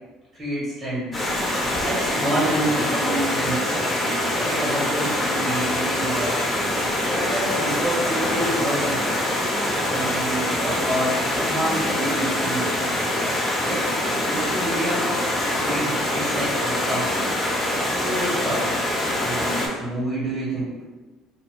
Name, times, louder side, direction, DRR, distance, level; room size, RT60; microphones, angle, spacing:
voice 1, 0.3-1.1 1.8-3.6 4.4-6.4 7.0-9.1 9.9-12.7 13.6-15.2 15.5-17.1 17.9-18.8 19.1-20.7, right 1 dB, 40° right, -9 dB, 1.5 m, -28 dB
Stream, 1.1-19.7, left 1 dB, 15° left, 0.9 m, -24 dB
2.6 x 2.2 x 3.5 m, 1.2 s
supercardioid pair, 105°, 0 cm